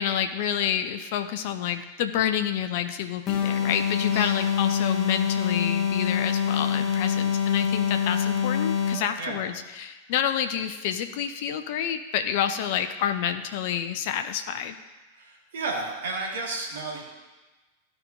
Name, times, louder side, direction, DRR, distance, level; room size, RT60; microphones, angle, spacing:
voice 1, 0.0-14.8, left 9 dB, 50° left, 8 dB, 0.4 m, -28 dB
sound 1, 3.3-9.2, left 7 dB, 30° left, 1.0 m, -25 dB
voice 2, 4.1-4.5 9.2-9.5 15.1-17.0, right 3 dB, 60° right, -1 dB, 1.7 m, -33 dB
13.0 x 4.8 x 2.6 m, 1.2 s
figure-of-eight pair, 90°, 0 cm